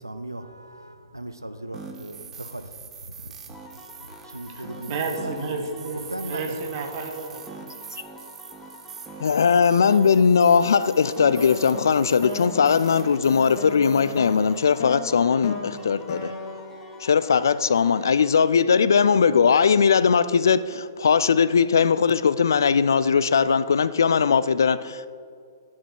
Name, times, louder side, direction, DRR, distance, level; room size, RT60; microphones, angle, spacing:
voice 1, 0.0-3.6 3.9-5.6 6.1-6.6, right 1 dB, 90° right, 0.6 m, -37 dB
sound 1, 1.7-14.8, right 5 dB, 15° right, 0.8 m, -43 dB
sound 2, 3.5-18.3, left 2 dB, 15° left, 1.1 m, -48 dB
voice 2, 4.5-7.4, right 4 dB, 35° right, 1.5 m, -32 dB
voice 3, 9.2-16.3 17.0-25.1, left 6 dB, 65° left, 0.4 m, -19 dB
sound 3, 11.4-17.8, left 4 dB, 40° left, 1.3 m, -37 dB
10.5 x 7.3 x 4.6 m
figure-of-eight pair, 120°, 2 cm